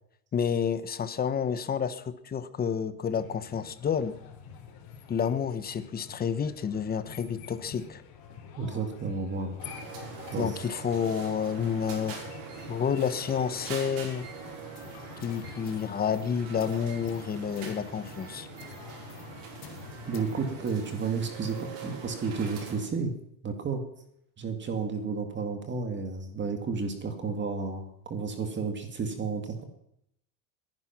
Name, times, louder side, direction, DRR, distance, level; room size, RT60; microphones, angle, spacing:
voice 1, 0.3-4.2 5.1-8.0 10.4-12.3 12.7-14.2 15.2-18.5, left 7 dB, 20° left, 13 dB, 1.0 m, -29 dB
sound 1, 3.2-20.8, left 7 dB, 55° left, 3.8 m, -48 dB
voice 2, 8.6-9.6 10.3-10.6 20.1-23.1 23.4-23.8 24.4-29.6, right 4 dB, 25° right, 6 dB, 2.1 m, -32 dB
sound 2, 9.6-22.9, right 6 dB, 65° right, 5.9 m, -43 dB
sound 3, 14.5-21.8, left 7 dB, 35° left, 2.6 m, -54 dB
21.5 x 11.0 x 6.0 m, 0.75 s
cardioid pair, 145°, 45 cm